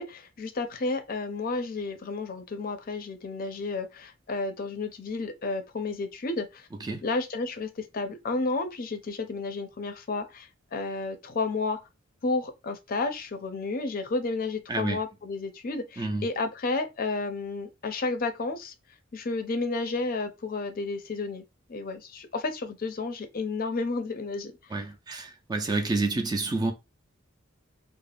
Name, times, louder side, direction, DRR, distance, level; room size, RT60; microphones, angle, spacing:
voice 1, 0.0-6.7 7.0-11.8 12.2-18.7 19.1-21.4 21.7-24.5, left 3 dB, 45° left, 0.5 m, -31 dB
voice 2, 24.7-26.7, right 3 dB, 20° right, 0.4 m, -29 dB
2.4 x 2.0 x 3.3 m
head